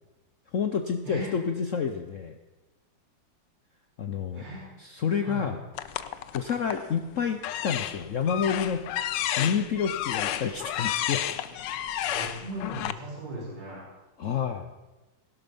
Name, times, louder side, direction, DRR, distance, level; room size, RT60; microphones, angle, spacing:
voice 1, 0.5-2.4 4.0-4.5 4.8-5.6 6.3-8.8 9.4-11.2 14.2-14.7, left 7 dB, 55° left, 7 dB, 0.9 m, -29 dB
voice 2, 4.3-4.7 5.2-5.5 12.0-13.9, equal, 80° right, -4 dB, 4.3 m, -37 dB
sound 1, 5.8-6.9 7.4-12.9, left 11 dB, 75° left, 1.3 m, -31 dB
17.0 x 11.5 x 5.4 m, 1.1 s
omnidirectional pair, 2.0 m